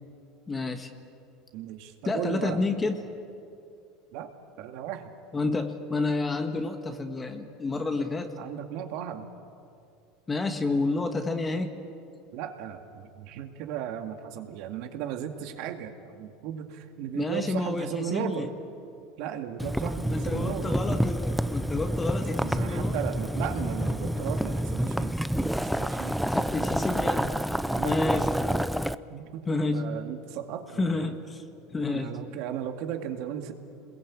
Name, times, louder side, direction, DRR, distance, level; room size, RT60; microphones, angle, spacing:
voice 1, 0.5-0.9 2.0-3.1 5.3-8.3 10.3-11.7 17.1-18.5 20.0-23.0 26.3-27.4 27.8-28.3 29.5-30.0 30.8-31.4 31.7-32.1, left 3 dB, 20° left, 6 dB, 1.6 m, -29 dB
voice 2, 1.5-2.6 4.1-4.3 4.6-5.1 8.4-9.3 12.3-18.5 19.2-20.8 22.4-25.1 25.4-26.3 27.7-28.0 29.1-31.1 31.9-33.5, right 9 dB, 65° right, 5 dB, 2.3 m, -36 dB
Boiling, 19.6-28.9, equal, ahead, 0.6 m, -28 dB
28.0 x 21.5 x 8.7 m, 2.5 s
supercardioid pair, 120°, 0 cm